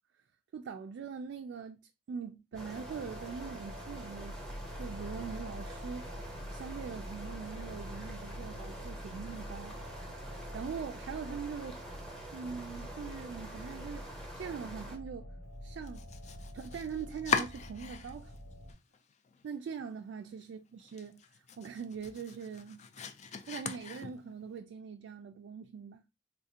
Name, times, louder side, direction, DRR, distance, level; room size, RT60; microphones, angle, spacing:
voice 1, 0.5-1.8 2.1-9.8 10.3-11.9 12.3-15.3 15.6-16.1 16.5-18.3 19.4-21.2 21.6-22.8 23.5-26.0, right 6 dB, 75° right, 0.3 m, -42 dB
sound 1, 2.5-18.7, equal, 65° left, 0.8 m, -46 dB
sound 2, 2.5-15.0, right 1 dB, ahead, 0.7 m, -47 dB
Domestic sounds home sounds, 15.8-18.4 18.7-19.4 19.8-19.9 20.3-20.4 20.8-24.5, left 6 dB, 40° left, 0.3 m, -39 dB
3.5 x 2.4 x 2.7 m
head